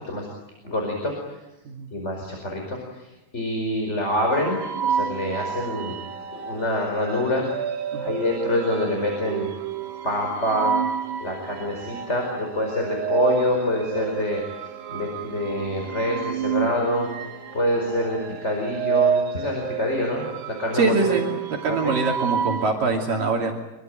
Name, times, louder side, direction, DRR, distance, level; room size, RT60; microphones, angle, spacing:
voice 1, 0.6-1.4 1.9-3.1 3.3-4.6 4.9-6.0 6.4-7.4 8.0-9.5 10.0-10.7 11.2-14.4 14.9-17.1 17.5-20.3 20.6-21.2 21.7-21.9, left 1 dB, 15° left, 1 dB, 4.7 m, -26 dB
sound 1, 4.3-22.7, right 7 dB, 85° right, 4.2 m, -29 dB
voice 2, 20.7-21.2 21.6-23.5, right 3 dB, 60° right, 1 dB, 4.2 m, -23 dB
25.5 x 23.5 x 9.1 m, 1.0 s
omnidirectional pair, 4.7 m